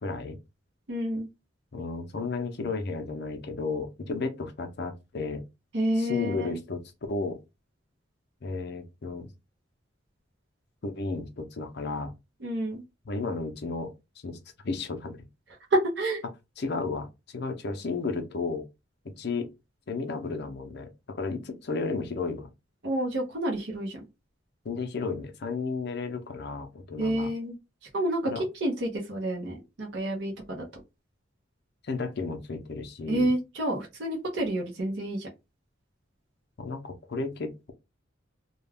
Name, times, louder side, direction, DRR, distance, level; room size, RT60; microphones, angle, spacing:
voice 1, 0.0-0.4 1.7-5.4 6.0-6.8 7.1-7.4 8.4-9.3 10.8-12.1 13.1-15.3 16.6-18.7 19.2-19.5 19.9-22.5 24.6-27.3 28.3-28.4 31.8-33.3 36.6-37.7, left 3 dB, 55° left, 0.5 m, -33 dB
voice 2, 0.9-1.3 5.7-6.6 12.4-12.8 15.7-16.2 22.8-24.0 27.0-27.6 27.9-30.6 33.1-35.3, right 1 dB, 60° right, 0.7 m, -29 dB
2.3 x 2.2 x 3.3 m
head